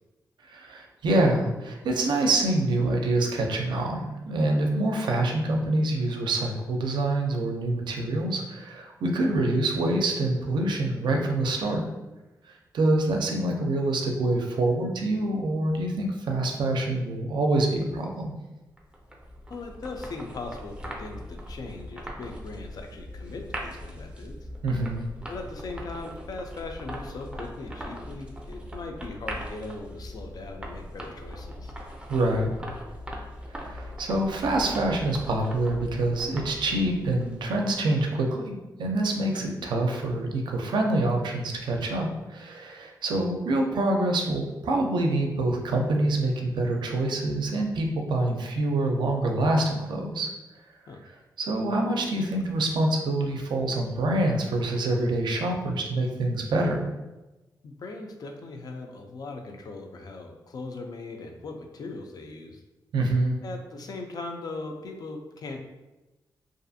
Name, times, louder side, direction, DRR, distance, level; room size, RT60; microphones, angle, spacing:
voice 1, 0.4-11.8 12.7-18.3 24.6-25.0 32.1-32.5 33.5-50.3 51.4-56.9 62.9-63.4, right 2 dB, 90° right, 2 dB, 0.4 m, -26 dB
sound 1, 18.8-37.8, equal, 15° right, 0.4 m, -40 dB
voice 2, 19.5-24.4 25.3-31.7 39.3-39.6 50.9-51.0 57.6-62.6 63.4-65.6, left 3 dB, 60° left, 4 dB, 0.4 m, -39 dB
2.5 x 2.4 x 2.6 m, 1.1 s
wide cardioid pair, 110°, 8 cm